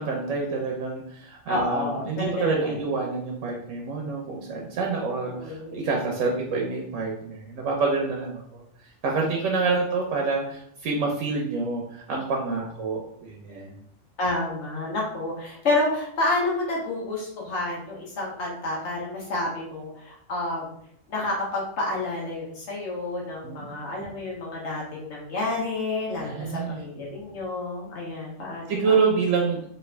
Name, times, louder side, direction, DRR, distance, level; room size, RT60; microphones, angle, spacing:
voice 1, 0.0-8.6 9.0-13.7 23.4-23.7 26.2-26.8 28.7-29.7, right 4 dB, 85° right, 0 dB, 1.0 m, -27 dB
voice 2, 1.5-2.8 5.2-5.9 9.4-9.8 14.2-20.7 21.1-29.0, left 2 dB, 65° left, -3 dB, 1.2 m, -29 dB
3.3 x 2.5 x 3.2 m, 0.67 s
omnidirectional pair, 1.3 m